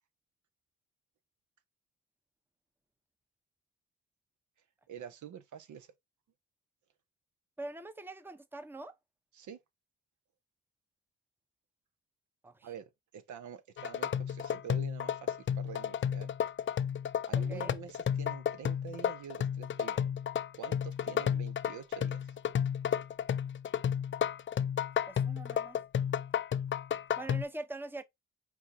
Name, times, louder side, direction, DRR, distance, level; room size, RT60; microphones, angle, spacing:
voice 1, 4.9-5.9 9.3-9.6 12.6-16.3 17.3-20.1 20.6-22.4, right 8 dB, 65° right, 0.8 m, -47 dB
voice 2, 7.6-9.0 12.4-12.7 17.3-17.7 25.1-25.8 27.2-28.0, right 2 dB, 5° right, 0.8 m, -43 dB
sound 1, 13.8-27.4, left 8 dB, 40° left, 0.5 m, -32 dB
4.6 x 4.1 x 2.7 m
supercardioid pair, 50°, 32 cm